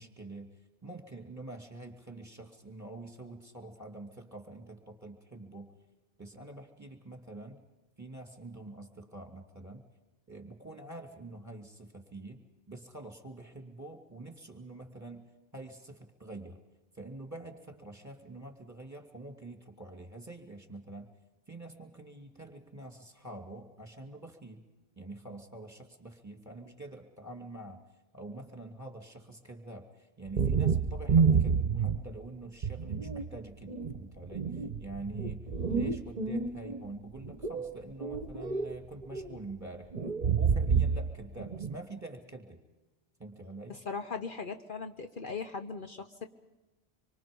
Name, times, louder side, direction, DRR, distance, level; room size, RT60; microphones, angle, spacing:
voice 1, 0.0-5.7 6.2-7.6 8.0-9.9 10.3-15.3 15.5-16.6 16.9-21.1 21.5-24.6 25.0-27.8 28.1-39.9 40.2-42.6 43.2-43.8, right 2 dB, 15° right, 4 dB, 2.7 m, -46 dB
sound 1, 30.3-32.2 32.6-33.3 33.7-36.8 37.2-38.8 39.0-39.4 39.9-41.1 41.4-41.8, right 5 dB, 50° right, 1.0 m, -29 dB
voice 2, 43.7-46.3, left 4 dB, 55° left, 6 dB, 1.1 m, -39 dB
26.0 x 24.0 x 5.4 m, 1.1 s
omnidirectional pair, 1.0 m